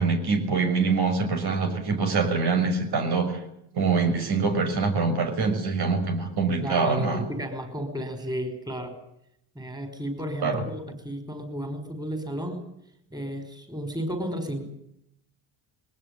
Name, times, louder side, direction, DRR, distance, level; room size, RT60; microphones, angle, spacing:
voice 1, 0.0-3.4 3.7-7.2 10.4-10.7, right 4 dB, 55° right, 6 dB, 6.3 m, -24 dB
voice 2, 6.6-9.0 9.6-12.7 13.1-14.6, equal, 10° right, 8 dB, 5.6 m, -33 dB
21.0 x 19.0 x 9.9 m, 0.77 s
supercardioid pair, 90°, 47 cm